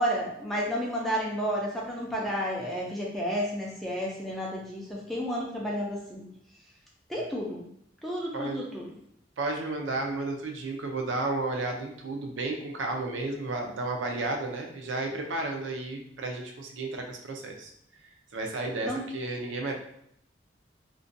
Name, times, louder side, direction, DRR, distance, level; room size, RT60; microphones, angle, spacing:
voice 1, 0.0-6.3 7.1-7.6 8.0-8.9 18.9-19.0, equal, ahead, -4 dB, 0.3 m, -31 dB
voice 2, 8.3-8.6 9.4-17.7 18.3-19.7, right 2 dB, 85° right, 2 dB, 0.5 m, -32 dB
2.5 x 2.2 x 2.5 m, 0.72 s
head